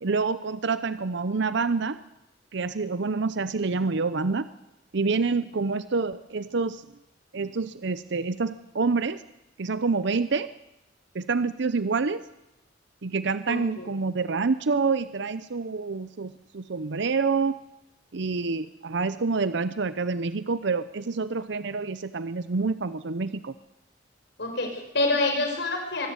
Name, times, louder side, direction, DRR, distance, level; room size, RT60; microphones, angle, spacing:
voice 1, 0.0-2.0 2.5-4.4 4.9-6.8 7.3-9.2 9.6-10.5 11.1-12.2 13.0-17.5 18.1-23.5, right 4 dB, 65° right, 14 dB, 0.7 m, -27 dB
voice 2, 13.5-13.9 24.4-26.1, left 2 dB, 65° left, 4 dB, 5.6 m, -27 dB
24.0 x 14.0 x 9.6 m, 0.92 s
head